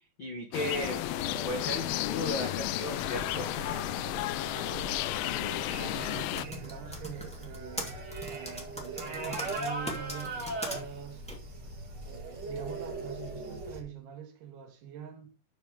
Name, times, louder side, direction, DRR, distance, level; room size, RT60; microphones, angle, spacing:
voice 1, 0.2-1.0 1.4-3.8, left 1 dB, 70° left, 1.1 m, -35 dB
High Noon in Suburbia, 0.5-6.5, left 16 dB, 90° left, 2.0 m, -33 dB
sound 1, 0.7-13.8, right 2 dB, 35° right, 1.7 m, -40 dB
voice 2, 5.8-8.0 8.3-11.3 12.1-15.3, right 8 dB, 75° right, 3.8 m, -44 dB
Typing, 6.1-10.8 11.3-11.4, equal, 5° left, 1.1 m, -39 dB
11.5 x 5.1 x 4.8 m
omnidirectional pair, 4.7 m